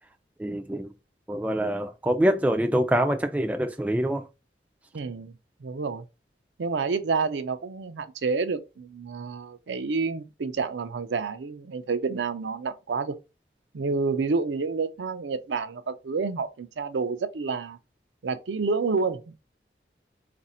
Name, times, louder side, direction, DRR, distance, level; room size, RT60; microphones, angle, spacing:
voice 1, 0.4-0.9 1.3-4.2, right 1 dB, 10° right, 0.3 m, -25 dB
voice 2, 4.9-5.3 5.6-6.0 6.6-13.1 13.7-17.8 18.2-19.3, right 4 dB, 80° right, 0.5 m, -29 dB
4.1 x 2.5 x 4.2 m
head